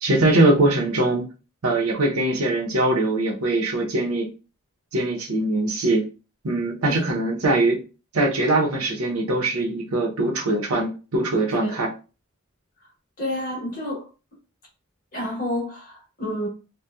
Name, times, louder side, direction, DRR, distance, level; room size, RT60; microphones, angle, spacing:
voice 1, 0.0-1.3 1.6-4.3 4.9-6.0 6.4-7.8 8.1-11.9, right 2 dB, 90° right, 0.8 m, -22 dB
voice 2, 13.2-14.1 15.1-16.5, left 1 dB, 40° left, 1.0 m, -29 dB
2.7 x 2.2 x 2.3 m
head